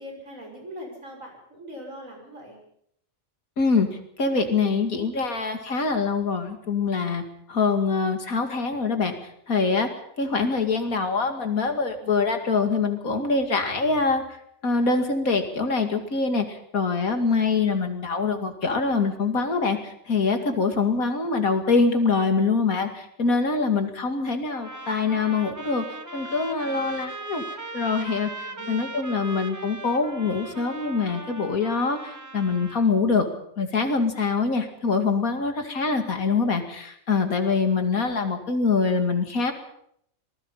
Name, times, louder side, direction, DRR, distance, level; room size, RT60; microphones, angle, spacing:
voice 1, 0.0-2.6 26.6-27.0 28.4-28.8, equal, 70° right, 1 dB, 6.4 m, -41 dB
voice 2, 3.6-3.9 4.2-7.2 7.5-9.1 9.5-9.9 10.2-14.4 14.6-25.8 26.1-27.4 27.7-33.3 33.6-39.5, left 4 dB, 90° left, 6 dB, 2.8 m, -24 dB
sound 1, 24.5-32.9, right 2 dB, 15° right, 1.4 m, -38 dB
25.5 x 20.0 x 5.7 m, 0.70 s
omnidirectional pair, 1.4 m